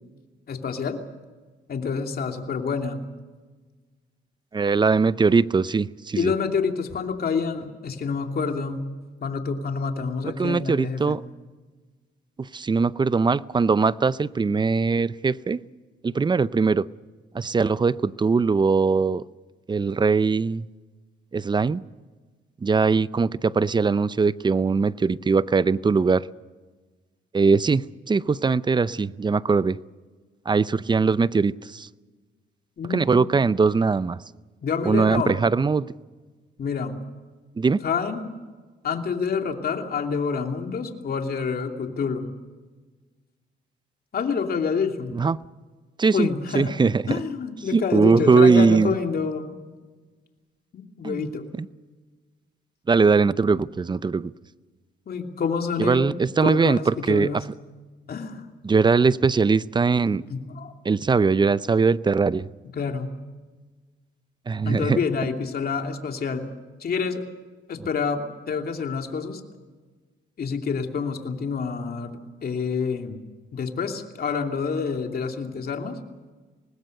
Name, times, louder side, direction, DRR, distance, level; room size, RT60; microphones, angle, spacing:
voice 1, 0.5-1.0 1.7-3.0 6.1-8.8 9.2-11.2 32.8-33.2 34.6-35.4 36.6-36.9 37.8-38.4 38.8-42.3 44.1-45.1 46.1-46.7 47.1-49.5 50.7-51.4 55.1-56.2 56.4-57.4 58.1-58.4 60.1-60.7 62.8-63.1 64.6-66.5 66.8-67.2 67.7-69.4 70.4-73.2 73.5-76.0, left 5 dB, 50° left, 4 dB, 2.8 m, -28 dB
voice 2, 4.5-6.3 10.2-11.2 12.4-15.6 16.0-16.9 17.3-19.2 19.7-20.7 21.3-21.8 22.6-26.3 27.3-29.8 30.5-31.9 32.9-34.2 34.9-35.9 37.6-37.8 45.1-45.4 46.0-46.3 46.5-47.2 47.7-48.9 51.0-51.3 51.6-51.7 52.9-54.3 55.8-57.3 58.6-60.2 60.8-62.5 64.5-65.0, right 4 dB, 20° right, 18 dB, 0.6 m, -21 dB
24.5 x 20.0 x 6.6 m, 1.4 s
cardioid pair, 90°, 20 cm